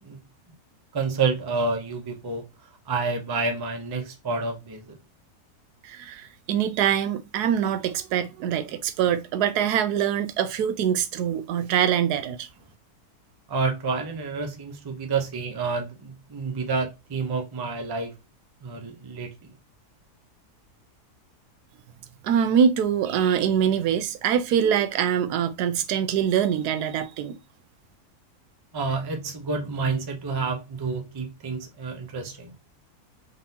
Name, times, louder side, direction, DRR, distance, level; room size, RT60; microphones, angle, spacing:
voice 1, 0.9-2.4 2.9-4.9 13.5-18.1 18.6-19.5 28.7-32.5, right 4 dB, 35° right, 0.4 m, -29 dB
voice 2, 5.8-12.5 22.2-27.4, right 8 dB, 90° right, 1.1 m, -24 dB
3.7 x 3.5 x 2.7 m
omnidirectional pair, 1.6 m